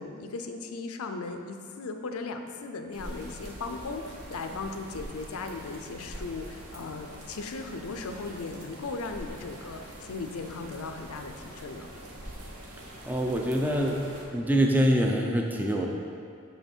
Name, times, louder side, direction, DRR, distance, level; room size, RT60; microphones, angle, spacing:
voice 1, 0.0-11.9, left 3 dB, 80° left, 6 dB, 0.5 m, -37 dB
sound 1, 2.9-14.2, equal, 85° right, 1.1 m, -44 dB
voice 2, 13.0-14.0 14.3-15.9, equal, 10° right, 1 dB, 0.4 m, -25 dB
6.1 x 5.6 x 4.4 m, 2.4 s
head